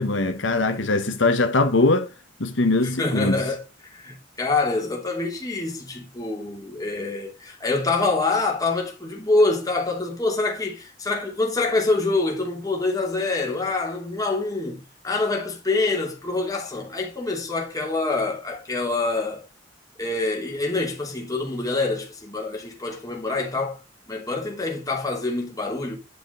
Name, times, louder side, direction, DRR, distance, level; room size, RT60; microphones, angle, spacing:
voice 1, 0.0-2.1 2.4-3.4, left 2 dB, 90° left, 1.2 m, -21 dB
voice 2, 2.8-19.4 20.0-23.8 24.1-26.0, left 3 dB, 20° left, 2.8 m, -26 dB
10.5 x 5.1 x 3.9 m
head